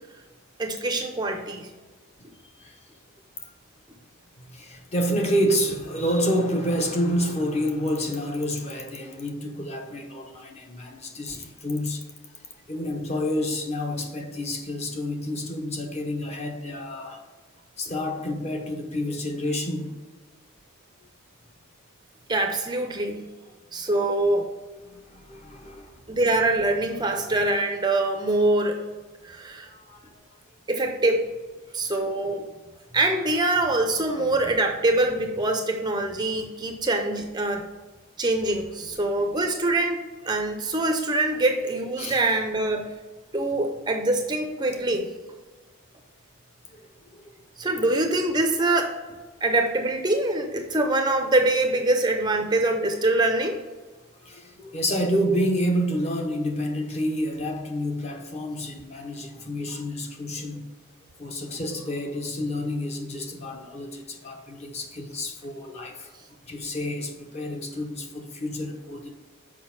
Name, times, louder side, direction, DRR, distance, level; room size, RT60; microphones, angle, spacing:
voice 1, 0.6-1.7 22.3-23.3 23.7-24.5 26.1-28.8 29.2-29.7 30.7-31.3 31.7-32.4 32.9-37.6 38.2-40.0 40.3-42.9 43.3-45.1 47.6-48.9 49.4-53.6, right 2 dB, 20° right, 0.6 m, -24 dB
voice 2, 4.5-12.0 12.7-17.2 17.8-20.0 23.1-23.2 24.8-25.9 29.7-30.2 34.1-34.3 38.9-39.1 42.0-42.2 46.7-47.3 54.2-60.7 61.2-66.1 66.5-69.2, equal, 30° left, 0.9 m, -29 dB
6.5 x 5.2 x 5.8 m
head